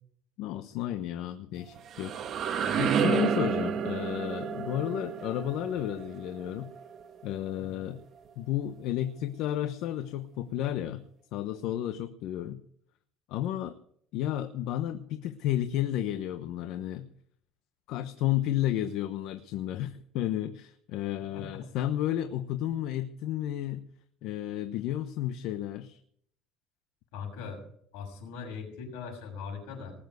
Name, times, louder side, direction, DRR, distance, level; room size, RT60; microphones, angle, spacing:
voice 1, 0.4-2.3 2.8-6.7 7.2-8.0 8.4-11.0 11.3-12.6 13.3-13.8 14.1-17.1 17.9-23.8 24.2-26.0, left 12 dB, 65° left, 10 dB, 0.9 m, -32 dB
sound 1, 1.6-7.4, right 7 dB, 40° right, 1.5 m, -31 dB
voice 2, 7.6-7.9 21.3-21.6 27.1-27.6 27.9-29.9, left 5 dB, 85° left, 2 dB, 6.4 m, -40 dB
19.5 x 7.4 x 8.1 m, 0.64 s
cardioid pair, 140°, 0 cm